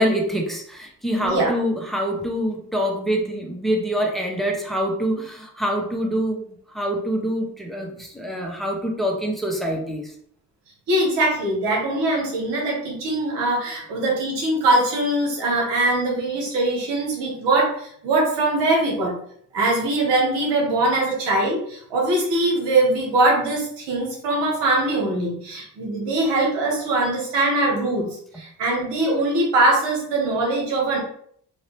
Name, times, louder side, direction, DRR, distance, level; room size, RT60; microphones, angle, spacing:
voice 1, 0.0-10.1, equal, ahead, 0 dB, 1.2 m, -25 dB
voice 2, 1.2-1.5 10.9-19.1 19.5-28.1 28.3-31.0, right 2 dB, 90° right, -2 dB, 1.5 m, -22 dB
4.4 x 2.7 x 3.3 m, 0.63 s
supercardioid pair, 55°, 41 cm